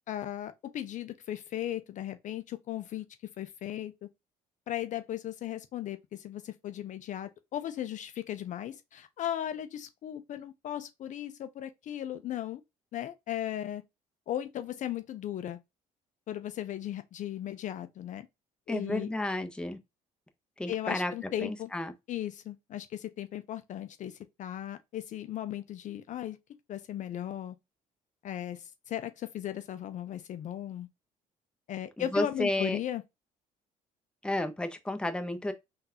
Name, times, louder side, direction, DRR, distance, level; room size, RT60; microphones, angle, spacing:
voice 1, 0.1-3.1 3.4-4.1 4.7-12.6 12.9-13.8 14.3-15.6 16.3-18.3 18.7-19.1 20.7-21.7 22.1-26.4 26.7-27.6 28.2-30.9 31.7-33.0, left 11 dB, 55° left, 0.4 m, -37 dB
voice 2, 18.7-19.8 20.6-21.1 21.4-21.9 32.0-32.8 34.2-35.5, left 1 dB, 5° left, 0.6 m, -31 dB
3.7 x 2.4 x 2.7 m
supercardioid pair, 80°, 15 cm